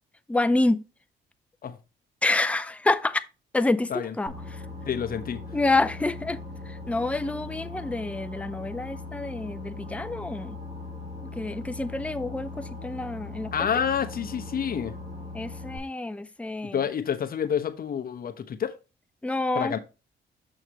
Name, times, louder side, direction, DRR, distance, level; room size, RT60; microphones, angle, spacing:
voice 1, 0.3-0.8 2.2-3.2 3.5-3.9 4.2-4.3 5.5-10.6 11.4-13.5 15.3-16.8 19.2-19.8, left 2 dB, 5° left, 0.5 m, -27 dB
Boat Water vehicle, 4.3-15.8, left 3 dB, 35° right, 2.2 m, -39 dB
voice 2, 4.9-5.4 13.5-14.9 16.7-18.8 19.5-19.8, left 8 dB, 50° left, 1.0 m, -28 dB
6.4 x 6.3 x 3.0 m
cardioid pair, 90°, 20 cm